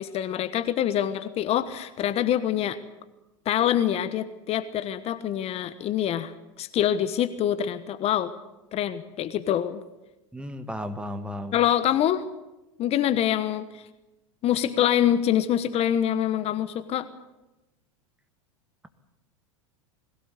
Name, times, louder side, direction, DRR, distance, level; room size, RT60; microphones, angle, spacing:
voice 1, 0.0-2.8 3.4-6.3 6.6-8.3 8.7-9.8 11.5-12.2 12.8-13.8 14.4-17.1, left 10 dB, 40° left, 12 dB, 1.2 m, -25 dB
voice 2, 10.3-11.6, equal, 5° right, 9 dB, 1.7 m, -34 dB
21.0 x 17.0 x 8.3 m, 1.0 s
hypercardioid pair, 95°, 16 cm